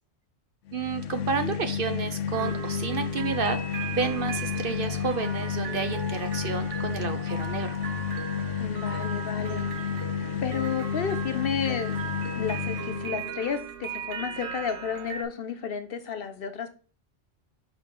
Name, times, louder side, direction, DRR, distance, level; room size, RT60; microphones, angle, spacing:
sound 1, 0.7-13.3, left 8 dB, 90° left, 1.0 m, -31 dB
voice 1, 0.7-3.6 3.9-7.8, right 5 dB, 55° right, 8 dB, 0.7 m, -30 dB
sound 2, 2.3-15.2, right 7 dB, 75° right, 1.1 m, -38 dB
voice 2, 8.6-9.9 10.4-12.0 12.3-16.7, left 7 dB, 55° left, 8 dB, 0.8 m, -32 dB
5.9 x 4.9 x 3.7 m, 0.38 s
omnidirectional pair, 1.2 m